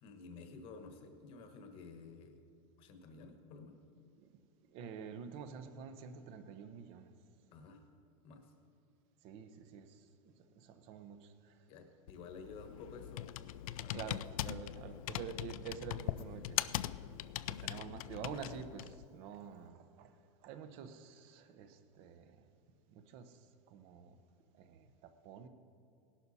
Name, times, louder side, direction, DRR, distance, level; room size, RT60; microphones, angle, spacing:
voice 1, 0.0-2.4 2.8-3.8 7.5-7.8 8.2-8.5 11.7-14.0, left 4 dB, 30° left, 6 dB, 1.2 m, -52 dB
voice 2, 4.7-7.1 9.2-11.6 13.9-16.6 17.5-22.4 22.9-24.2 24.5-25.5, right 7 dB, 35° right, 9 dB, 0.8 m, -48 dB
Computer keyboard, 12.1-19.1, left 13 dB, 80° left, 0.4 m, -41 dB
18.0 x 11.5 x 4.2 m, 2.4 s
supercardioid pair, 175°, 18 cm